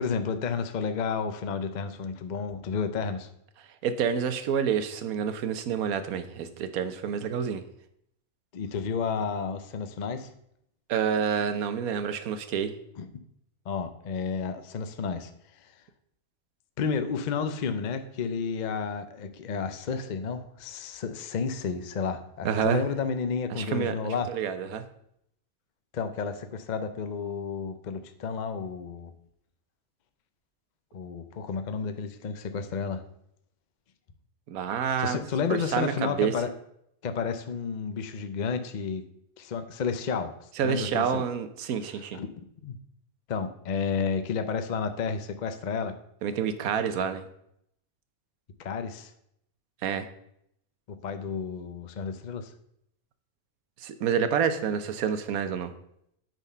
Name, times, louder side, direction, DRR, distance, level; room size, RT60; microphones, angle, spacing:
voice 1, 0.0-3.3 8.5-10.3 13.0-13.1 13.7-15.3 15.6-15.7 16.8-24.3 25.9-29.1 30.9-33.0 35.0-36.5 37.0-39.0 39.4-40.3 40.6-41.2 42.1-42.3 42.6-42.8 43.3-46.0 48.6-49.1 50.9-52.5, left 5 dB, 50° left, 9 dB, 0.6 m, -31 dB
voice 2, 3.8-7.6 10.9-12.7 22.4-22.8 23.5-24.8 34.5-35.2 35.7-36.3 40.6-42.2 46.2-47.2 49.8-50.1 53.8-55.7, right 7 dB, 85° right, 10 dB, 1.2 m, -28 dB
9.0 x 4.2 x 5.5 m, 0.74 s
omnidirectional pair, 1.5 m